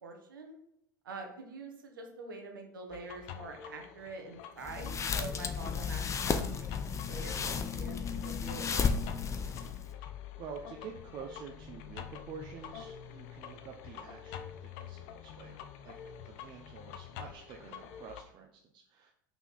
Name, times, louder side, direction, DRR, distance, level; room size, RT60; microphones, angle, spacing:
voice 1, 0.0-0.6 1.0-8.9, right 3 dB, 85° right, 3 dB, 1.2 m, -45 dB
sound 1, 2.9-18.2, left 9 dB, 60° left, 0.7 m, -47 dB
sound 2, 4.6-9.9, left 6 dB, 30° left, 0.7 m, -33 dB
voice 2, 10.4-15.9 16.2-19.1, right 6 dB, 45° right, 1 dB, 0.8 m, -48 dB
5.6 x 4.5 x 4.2 m, 0.74 s
hypercardioid pair, 85°, 11 cm